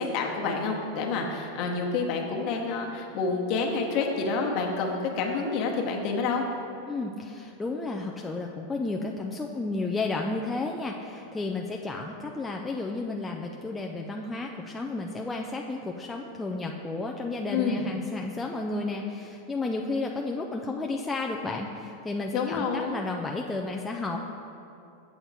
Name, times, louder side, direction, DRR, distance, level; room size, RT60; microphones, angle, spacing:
voice 1, 0.0-6.5 17.5-17.8 22.3-23.0, left 4 dB, 40° left, 1 dB, 1.0 m, -28 dB
voice 2, 6.9-24.2, left 3 dB, 10° left, 0 dB, 0.3 m, -32 dB
7.4 x 7.0 x 4.1 m, 2.7 s
supercardioid pair, 155°, 0 cm